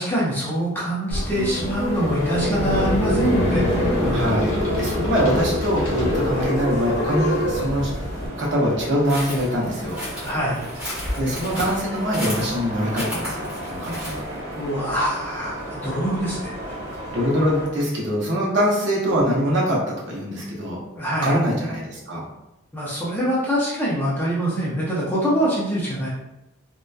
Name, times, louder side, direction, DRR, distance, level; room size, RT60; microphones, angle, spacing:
voice 1, 0.0-3.6 4.0-4.3 6.3-6.5 10.2-10.6 14.6-16.5 21.0-21.4 22.7-26.1, equal, 10° left, -7 dB, 0.5 m, -24 dB
sound 1, 1.1-8.3, left 1 dB, 70° left, 0.8 m, -24 dB
sound 2, 2.1-17.7, equal, 75° right, 1.0 m, -34 dB
voice 2, 4.1-7.9 8.4-10.0 11.2-14.2 17.1-20.8 21.2-22.2, equal, 55° right, -4 dB, 0.7 m, -23 dB
sound 3, 9.1-14.4, equal, 5° right, 1.2 m, -33 dB
2.7 x 2.2 x 2.2 m, 0.93 s
head